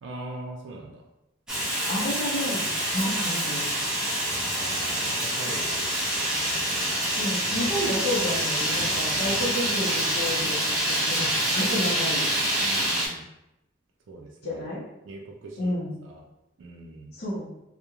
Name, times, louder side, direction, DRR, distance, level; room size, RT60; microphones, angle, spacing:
voice 1, 0.0-1.0 4.5-6.7 12.6-13.2 14.1-14.7 15.0-15.7 16.0-16.2 16.6-17.1, right 2 dB, 85° right, 0 dB, 0.4 m, -41 dB
Fire, 1.5-13.1, right 1 dB, 5° right, 0.4 m, -26 dB
voice 2, 1.9-2.7 2.9-3.7 7.1-11.3 11.5-12.3 14.4-14.8 15.6-16.0 17.1-17.5, left 1 dB, 55° left, -6 dB, 0.5 m, -30 dB
2.3 x 2.0 x 2.9 m, 0.90 s
head